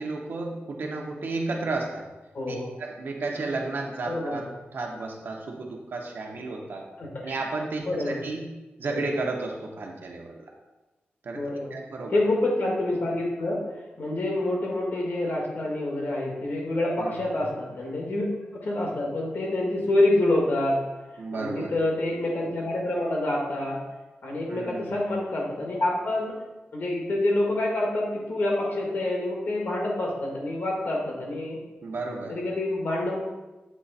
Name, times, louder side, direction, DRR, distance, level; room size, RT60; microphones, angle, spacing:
voice 1, 0.0-2.1 2.5-4.4 4.7-6.8 7.2-8.5 8.8-10.4 11.2-11.4 11.7-12.2 17.0-17.2 21.2-21.7 24.5-24.9 31.8-32.4, right 3 dB, 60° right, 0 dB, 0.9 m, -32 dB
voice 2, 2.3-2.7 4.1-4.5 7.0-7.3 7.9-8.2 8.9-9.0 11.3-11.7 12.1-13.6 14.0-18.3 18.6-20.8 21.3-23.8 24.2-26.3 26.7-31.6 32.3-33.2, left 1 dB, 55° left, -2 dB, 1.5 m, -27 dB
8.2 x 3.1 x 4.1 m, 1.1 s
wide cardioid pair, 175°, 4 cm